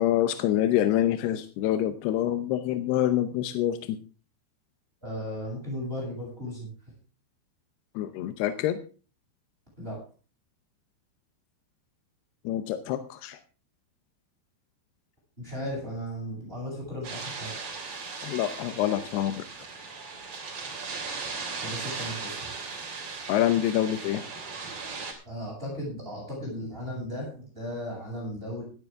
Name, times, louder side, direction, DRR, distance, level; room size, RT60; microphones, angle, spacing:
voice 1, 0.0-4.0 8.0-8.8 12.5-13.4 18.2-19.4 23.3-24.2, left 12 dB, 75° left, 10 dB, 2.6 m, -26 dB
voice 2, 5.0-6.7 9.8-10.0 15.4-17.5 21.6-22.5 25.3-28.6, equal, 10° right, -4 dB, 7.5 m, -36 dB
sound 1, 17.0-25.1, right 4 dB, 35° right, 3.6 m, -37 dB
16.5 x 12.5 x 3.7 m, 0.36 s
omnidirectional pair, 5.3 m